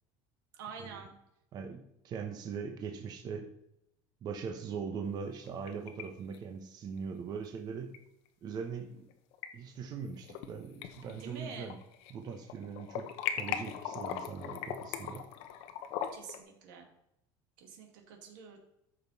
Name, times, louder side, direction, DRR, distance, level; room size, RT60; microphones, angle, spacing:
voice 1, 0.5-1.1 11.2-11.7 16.1-16.9 17.6-18.6, right 5 dB, 90° right, 3 dB, 2.2 m, -47 dB
voice 2, 1.5-3.5 4.2-7.9 8.4-9.1 9.5-11.8 12.1-13.1 13.4-15.3, right 6 dB, 40° right, 3 dB, 1.1 m, -40 dB
sound 1, 5.3-6.0 6.3-6.4 7.9-8.0 9.1-9.5 10.0-10.5 10.8-12.2 12.4-16.4, left 9 dB, 70° left, 1.0 m, -39 dB
14.0 x 5.6 x 4.2 m, 0.82 s
cardioid pair, 140°, 10 cm